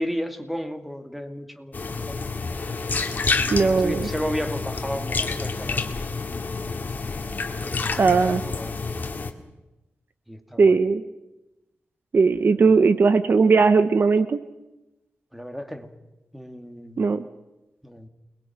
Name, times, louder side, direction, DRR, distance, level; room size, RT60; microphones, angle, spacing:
voice 1, 0.0-2.3 3.3-6.0 7.6-7.9 8.4-8.7 10.3-10.8 15.3-15.9 16.3-17.0 17.8-18.1, equal, ahead, 7 dB, 2.4 m, -33 dB
sound 1, 1.7-9.3, left 4 dB, 40° left, 2.1 m, -28 dB
voice 2, 3.5-4.1 8.0-8.4 10.6-11.0 12.1-14.4 17.0-17.2, right 4 dB, 50° right, 11 dB, 1.0 m, -18 dB
29.5 x 21.0 x 6.0 m, 0.99 s
wide cardioid pair, 125°, 4 cm